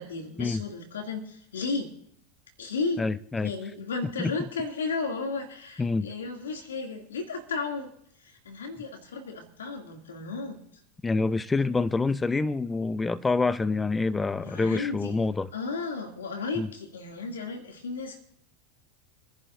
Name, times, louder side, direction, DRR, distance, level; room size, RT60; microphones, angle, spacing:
voice 1, 0.0-1.9 2.6-3.0 3.4-7.9 8.2-10.6 14.4-15.2 15.5-18.2, left 4 dB, 85° left, 2.4 m, -34 dB
voice 2, 3.0-3.5 4.2-4.3 5.8-6.1 11.0-15.5 16.6-16.7, left 3 dB, 15° left, 0.5 m, -26 dB
28.0 x 11.0 x 2.6 m
hypercardioid pair, 95°, 0 cm